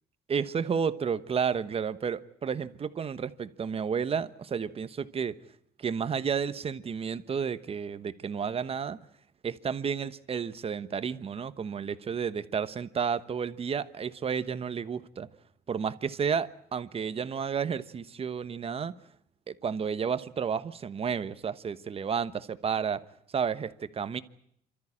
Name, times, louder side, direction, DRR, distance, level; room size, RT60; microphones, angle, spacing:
voice 1, 0.3-5.3 5.8-9.0 9.4-15.3 15.7-18.9 19.5-23.0 23.3-24.2, right 6 dB, 35° right, 13 dB, 1.2 m, -31 dB
28.0 x 13.5 x 10.0 m, 0.73 s
cardioid pair, 110°, 17 cm